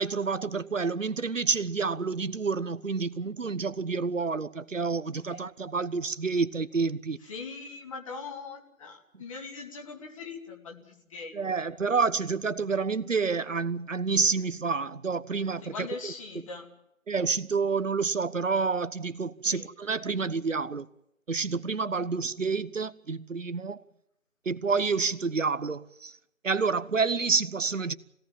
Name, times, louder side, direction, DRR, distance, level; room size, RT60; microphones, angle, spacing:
voice 1, 0.0-7.2 11.3-15.9 17.1-20.9 21.3-23.8 24.4-26.2 26.4-27.9, right 4 dB, 65° right, 1.3 m, -28 dB
voice 2, 7.2-11.6 15.6-16.7 19.4-19.7, left 4 dB, 25° left, 2.5 m, -41 dB
25.5 x 17.5 x 7.2 m
figure-of-eight pair, 150°, 41 cm